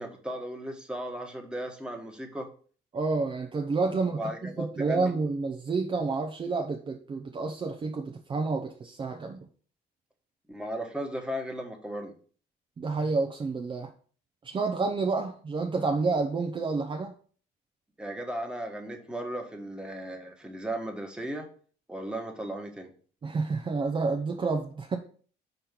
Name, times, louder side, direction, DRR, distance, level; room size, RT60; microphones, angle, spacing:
voice 1, 0.0-2.5 4.1-5.1 10.5-12.1 18.0-21.5 21.9-22.9, right 1 dB, 5° right, 1.4 m, -36 dB
voice 2, 2.9-9.5 12.8-13.9 14.4-17.1 23.2-25.0, right 4 dB, 30° right, 0.7 m, -29 dB
5.4 x 4.3 x 6.0 m
cardioid pair, 110°, 17 cm